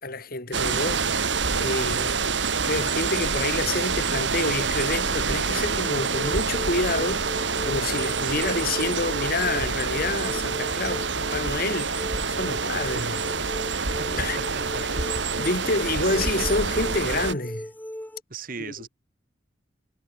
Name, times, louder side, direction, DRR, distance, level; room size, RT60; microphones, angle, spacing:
voice 1, 0.0-13.3 14.1-14.4 15.4-17.7 18.7-18.8, left 2 dB, 50° left, 5.8 m, -28 dB
sound 1, 0.5-17.3, right 5 dB, 70° right, 2.4 m, -27 dB
sound 2, 5.8-18.2, equal, 10° left, 1.9 m, -38 dB
voice 2, 8.2-8.6 13.8-15.0 15.3-16.3 18.3-18.9, right 4 dB, 50° right, 1.6 m, -39 dB
head